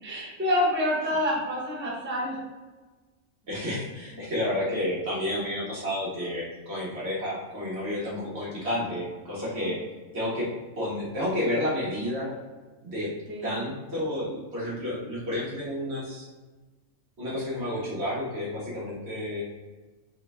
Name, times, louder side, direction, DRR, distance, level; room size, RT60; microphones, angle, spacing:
voice 1, 0.0-2.4 9.4-9.7 13.3-13.6, left 1 dB, 10° right, -5 dB, 0.8 m, -28 dB
voice 2, 3.5-9.8 10.1-10.5 10.8-12.3 12.8-13.1 13.4-16.3 17.2-19.5, left 1 dB, 55° right, -6 dB, 1.7 m, -30 dB
3.9 x 3.8 x 3.4 m, 1.3 s
omnidirectional pair, 1.3 m